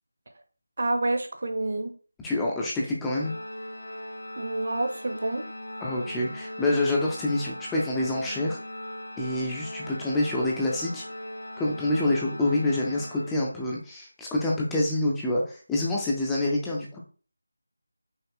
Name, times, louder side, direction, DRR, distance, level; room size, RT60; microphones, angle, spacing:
voice 1, 0.8-1.9 4.4-5.5, right 2 dB, 40° right, 6 dB, 0.7 m, -28 dB
voice 2, 2.2-3.3 5.8-8.6 9.2-11.0 11.6-17.0, left 1 dB, 5° left, -3 dB, 0.4 m, -27 dB
Organ, 3.1-13.8, left 1 dB, 75° left, 1.6 m, -39 dB
5.5 x 2.0 x 3.6 m, 0.37 s
figure-of-eight pair, 180°, 0 cm